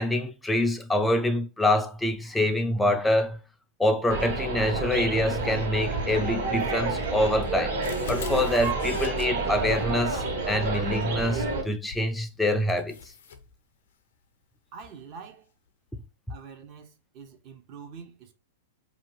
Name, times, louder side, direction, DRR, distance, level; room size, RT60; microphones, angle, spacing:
voice 1, 0.0-3.4 3.8-7.8 8.1-13.0, left 1 dB, 5° left, 0.4 m, -25 dB
sound 1, 4.1-11.6, right 3 dB, 60° right, 1.2 m, -29 dB
sound 2, 7.4-9.3 11.9-12.1 12.7-13.4, left 2 dB, 65° left, 0.5 m, -37 dB
voice 2, 14.7-15.5 16.3-18.3, right 6 dB, 40° right, 0.6 m, -45 dB
2.6 x 2.4 x 3.1 m
hypercardioid pair, 105°, 0 cm